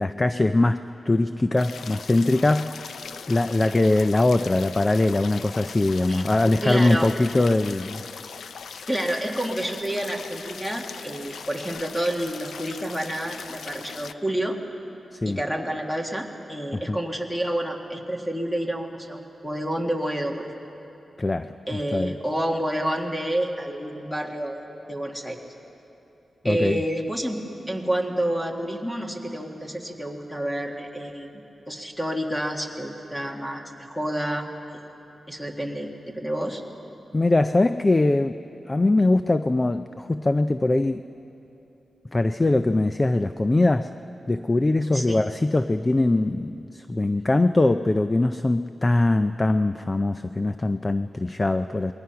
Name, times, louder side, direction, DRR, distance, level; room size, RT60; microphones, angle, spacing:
voice 1, 0.0-3.0 3.3-8.1 15.1-15.4 16.7-17.0 21.2-22.1 26.4-26.8 37.1-38.4 38.7-41.0 42.1-43.9 44.3-51.9, left 2 dB, 20° left, 10 dB, 0.4 m, -22 dB
sound 1, 1.6-14.1, left 6 dB, 90° left, 0.5 m, -40 dB
voice 2, 6.6-7.1 8.9-14.6 15.3-20.5 21.7-24.6 24.9-25.4 26.4-27.4 27.7-34.5 35.3-36.6 44.9-45.2, right 1 dB, 5° left, 2 dB, 1.8 m, -29 dB
27.0 x 22.0 x 5.8 m, 2.9 s
wide cardioid pair, 170°, 0 cm